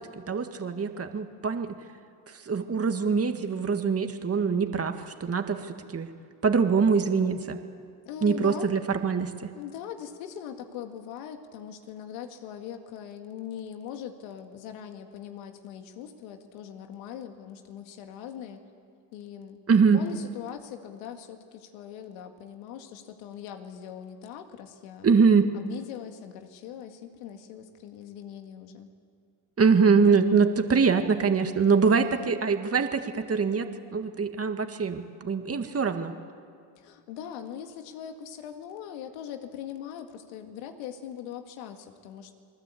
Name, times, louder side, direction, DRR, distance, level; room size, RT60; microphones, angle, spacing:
voice 1, 0.3-1.8 2.5-6.1 6.4-7.6 8.2-9.3 19.7-20.0 25.0-25.5 29.6-36.1, right 5 dB, 30° right, 6 dB, 1.9 m, -23 dB
voice 2, 8.1-8.8 9.6-18.6 19.1-19.6 19.9-25.1 25.5-28.9 31.9-32.4 36.8-42.3, left 9 dB, 90° left, 6 dB, 2.1 m, -41 dB
28.5 x 19.5 x 8.6 m, 2.2 s
supercardioid pair, 75°, 47 cm